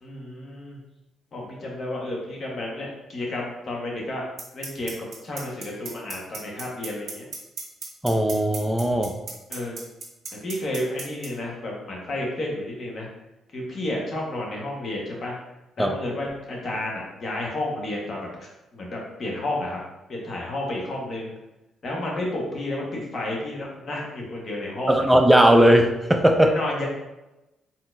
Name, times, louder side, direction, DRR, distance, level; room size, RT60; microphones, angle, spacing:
voice 1, 0.0-0.8 1.3-7.3 9.5-9.8 10.4-13.1 13.5-15.4 15.8-19.8 20.1-21.3 21.8-25.1 26.4-26.9, left 1 dB, 45° left, -2 dB, 1.3 m, -31 dB
sound 1, 4.4-11.3, right 4 dB, 50° right, 1.5 m, -34 dB
voice 2, 8.0-9.2 15.8-15.9 24.9-26.6, right 1 dB, 5° right, 4 dB, 0.5 m, -18 dB
4.1 x 4.0 x 2.6 m, 0.98 s
cardioid pair, 90°, 0 cm